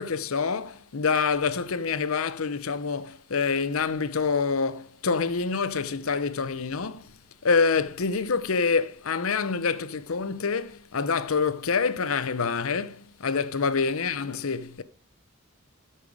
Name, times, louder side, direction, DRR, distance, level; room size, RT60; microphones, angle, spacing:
voice 1, 0.0-7.1 7.4-14.8, left 5 dB, 70° left, 0.7 m, -26 dB
13.5 x 5.6 x 4.8 m
head